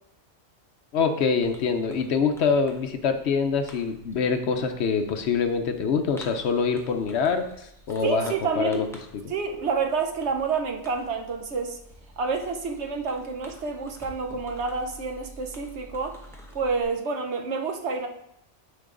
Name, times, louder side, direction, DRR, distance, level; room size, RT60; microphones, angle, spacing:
voice 1, 0.9-8.8, left 5 dB, 70° left, 7 dB, 0.9 m, -25 dB
Fireworks, 1.4-16.8, equal, ahead, 0.9 m, -49 dB
voice 2, 8.0-8.9 9.3-11.8 12.2-16.2 16.5-18.1, right 4 dB, 70° right, 4 dB, 1.1 m, -28 dB
10.0 x 3.9 x 3.8 m, 0.75 s
omnidirectional pair, 1.2 m